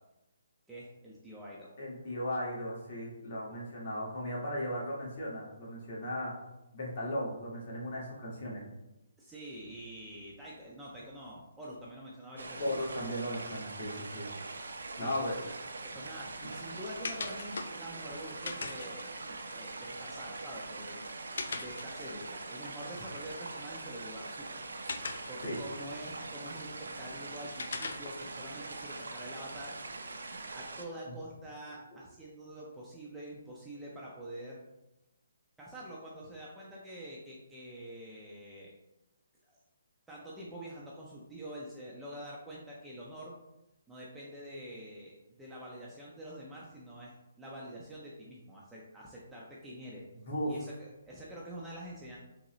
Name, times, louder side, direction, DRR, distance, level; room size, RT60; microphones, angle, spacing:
voice 1, 0.7-1.7 9.2-12.6 15.0-21.0 21.5-24.6 25.3-29.8 30.5-34.6 35.6-38.7 39.5-39.6 40.1-43.3 43.9-50.0 50.4-52.2, equal, 5° right, -7 dB, 0.4 m, -46 dB
voice 2, 1.8-6.4 6.7-8.6 12.6-14.3 15.0-15.3 16.4-16.5 25.5-25.6 50.1-50.5, equal, 40° left, -5 dB, 1.4 m, -36 dB
sound 1, 12.4-30.9, right 3 dB, 85° right, 0.6 m, -43 dB
sound 2, 15.9-30.5, left 4 dB, 70° left, 0.4 m, -46 dB
3.9 x 2.8 x 3.0 m, 0.94 s
hypercardioid pair, 165°, 0 cm